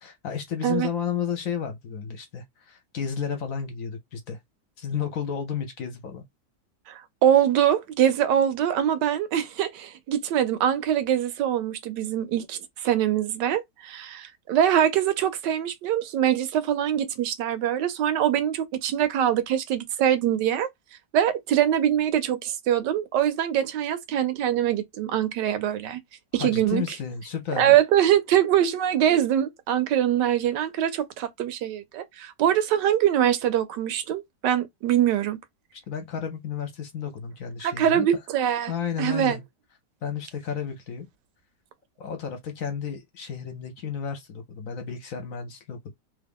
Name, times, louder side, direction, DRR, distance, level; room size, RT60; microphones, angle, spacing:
voice 1, 0.0-4.4 4.8-6.2 26.4-27.8 35.7-38.1 38.7-39.4 40.0-41.1 42.0-45.9, left 7 dB, 60° left, 1.0 m, -32 dB
voice 2, 6.9-20.7 21.1-26.0 26.3-26.8 27.6-35.4 37.6-38.7 39.0-39.4, right 10 dB, 85° right, 1.3 m, -23 dB
3.0 x 2.5 x 3.5 m
omnidirectional pair, 1.8 m